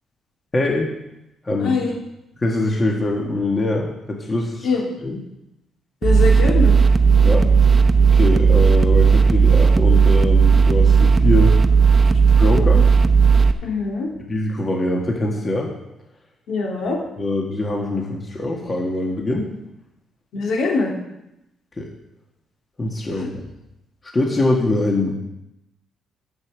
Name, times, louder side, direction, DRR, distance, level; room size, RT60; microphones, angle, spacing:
voice 1, 0.5-0.9 1.5-1.8 2.4-4.7 5.0-5.2 7.2-7.7 8.1-11.5 12.4-12.9 14.3-15.7 17.2-19.5 21.8-21.9 22.8-23.3 24.1-25.1, left 2 dB, 30° left, 0 dB, 1.7 m, -23 dB
voice 2, 1.6-1.9 4.6-4.8 6.0-6.8 13.6-14.1 16.5-17.0 20.3-20.9 23.2-23.3, left 3 dB, 75° left, -2 dB, 3.0 m, -22 dB
sound 1, 6.0-13.5, right 5 dB, 35° right, 0.8 m, -14 dB
8.8 x 6.6 x 7.4 m, 0.88 s
cardioid pair, 90°, 0 cm